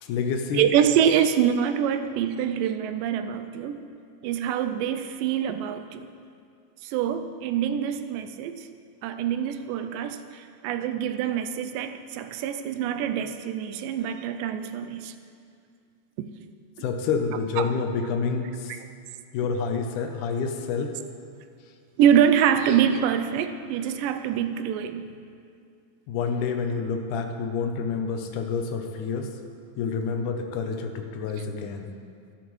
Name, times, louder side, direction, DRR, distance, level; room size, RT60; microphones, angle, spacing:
voice 1, 0.0-0.7 16.8-18.7 19.3-20.9 26.1-29.3 29.8-31.9, left 5 dB, 75° left, 5 dB, 2.1 m, -28 dB
voice 2, 0.5-3.8 4.2-6.1 6.8-8.7 9.0-15.1 16.2-16.3 17.6-17.7 22.0-25.1, right 9 dB, 85° right, 9 dB, 2.2 m, -25 dB
13.0 x 11.5 x 3.1 m, 2.3 s
omnidirectional pair, 4.0 m